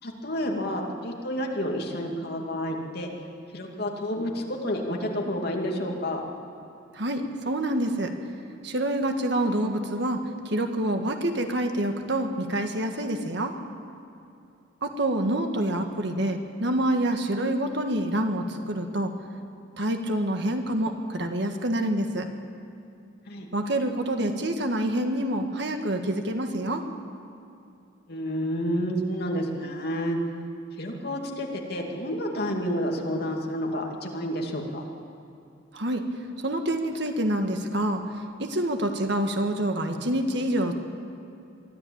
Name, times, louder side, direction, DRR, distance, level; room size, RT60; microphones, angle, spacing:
voice 1, 0.0-3.1 3.5-6.2 23.3-23.5 28.1-30.2 30.8-34.8, equal, 55° left, 1 dB, 2.6 m, -30 dB
voice 2, 6.9-8.1 8.6-13.6 14.8-19.1 19.8-22.3 23.5-26.9 35.7-36.1 36.4-38.0 38.4-40.7, right 1 dB, 60° right, 5 dB, 1.7 m, -27 dB
23.0 x 13.5 x 8.8 m, 2.6 s
head